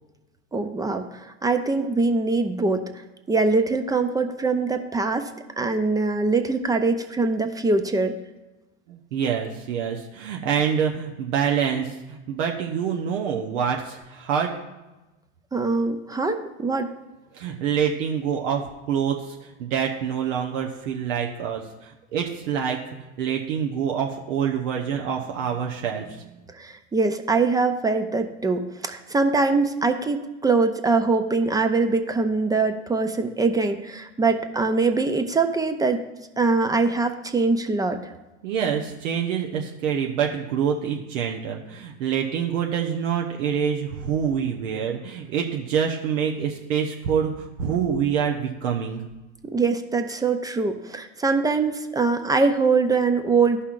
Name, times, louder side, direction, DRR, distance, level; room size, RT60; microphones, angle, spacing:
voice 1, 0.5-2.9 3.3-5.3 5.6-8.2 15.5-16.9 26.6-36.0 36.4-38.1 49.4-53.6, right 3 dB, 10° right, 7 dB, 0.4 m, -23 dB
voice 2, 8.9-14.6 17.3-22.8 23.2-26.4 38.4-49.0, right 7 dB, 80° right, 1 dB, 0.8 m, -26 dB
13.0 x 5.5 x 2.5 m, 1.1 s
supercardioid pair, 105°, 37 cm